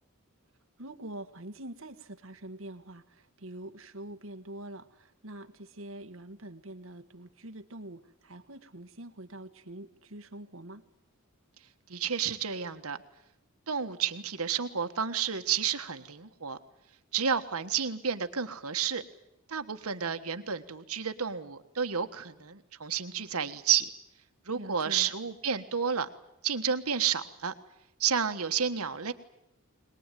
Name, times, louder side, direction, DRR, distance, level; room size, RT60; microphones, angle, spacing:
voice 1, 0.8-10.8 24.5-25.1, right 1 dB, 65° right, 7 dB, 1.6 m, -45 dB
voice 2, 11.9-13.0 13.7-16.6 17.1-19.0 19.5-23.9 24.4-26.1 26.4-27.5 28.0-29.1, right 7 dB, 90° right, 8 dB, 1.5 m, -31 dB
22.5 x 20.5 x 9.2 m, 0.86 s
head